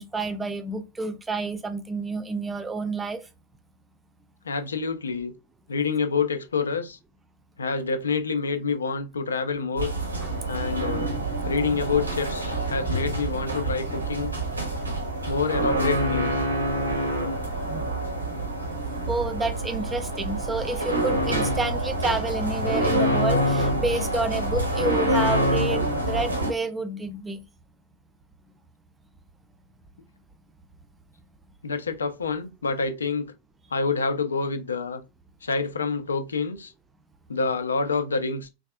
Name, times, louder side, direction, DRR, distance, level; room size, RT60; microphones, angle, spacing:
voice 1, 0.0-3.2 10.2-10.3 17.6-17.9 19.1-27.4, right 3 dB, 10° right, 0.4 m, -29 dB
voice 2, 4.4-5.3 5.7-7.0 7.6-9.9 10.5-11.1 11.4-14.3 15.3-16.4 31.6-33.3 33.7-35.0 35.4-36.7 37.3-38.5, left 4 dB, 70° left, 0.4 m, -27 dB
sound 1, 9.8-26.5, right 1 dB, 80° right, 0.7 m, -26 dB
3.3 x 2.4 x 2.2 m
figure-of-eight pair, 90°, 0 cm